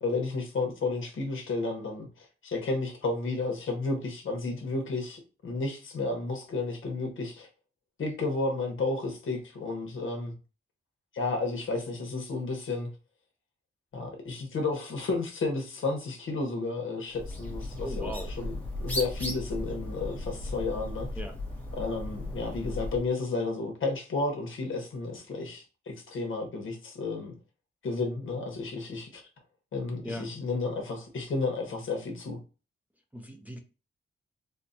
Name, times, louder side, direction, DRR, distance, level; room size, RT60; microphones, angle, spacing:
voice 1, 0.0-7.5 8.0-10.3 11.1-12.9 13.9-18.1 18.4-21.1 21.8-27.4 27.8-29.2 29.7-32.4, left 3 dB, 70° left, 1.1 m, -32 dB
Bird, 17.1-23.1, left 1 dB, 10° left, 0.8 m, -36 dB
voice 2, 17.8-18.3 21.2-21.4 30.0-30.3 33.1-33.6, equal, 5° right, 0.4 m, -38 dB
4.2 x 2.1 x 2.6 m
wide cardioid pair, 140°, 21 cm